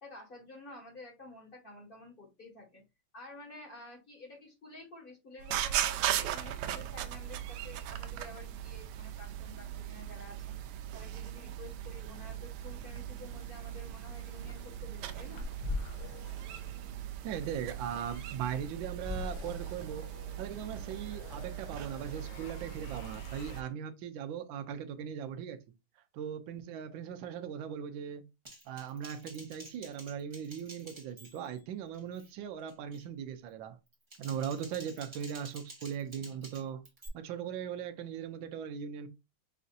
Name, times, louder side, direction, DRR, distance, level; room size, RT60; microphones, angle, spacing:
voice 1, 0.0-2.8 3.1-10.5 10.9-15.5, left 2 dB, 30° left, 1.4 m, -51 dB
sound 1, 5.4-23.6, right 11 dB, 90° right, 1.5 m, -39 dB
sound 2, 12.9-23.7, left 4 dB, 80° left, 1.6 m, -45 dB
voice 2, 17.2-20.1 20.4-25.6 26.0-28.2 28.6-33.8 34.2-36.8 37.1-39.1, right 8 dB, 70° right, 1.3 m, -39 dB
Typing, 28.4-31.6 31.9-32.3 32.7-33.1 33.9-37.1, right 1 dB, 20° right, 0.8 m, -51 dB
6.0 x 2.7 x 2.5 m
omnidirectional pair, 2.4 m